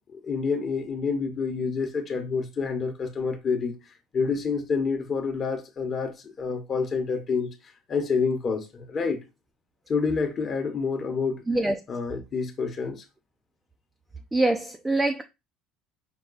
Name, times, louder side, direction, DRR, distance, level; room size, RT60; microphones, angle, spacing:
voice 1, 0.1-3.8 4.1-7.5 7.9-9.2 9.9-11.4 11.9-13.0, left 5 dB, 35° left, 1.0 m, -28 dB
voice 2, 11.5-11.8 14.3-15.2, right 2 dB, 10° right, 0.5 m, -24 dB
5.7 x 2.3 x 3.9 m
cardioid pair, 120°, 0 cm